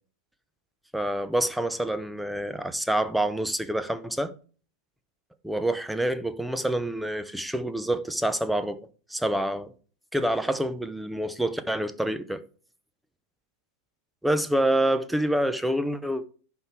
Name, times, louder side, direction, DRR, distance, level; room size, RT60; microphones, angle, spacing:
voice 1, 0.9-4.3 5.4-9.7 10.1-12.4 14.2-16.2, right 1 dB, 5° right, 0.7 m, -27 dB
11.0 x 3.7 x 4.4 m
figure-of-eight pair, 90°, 0 cm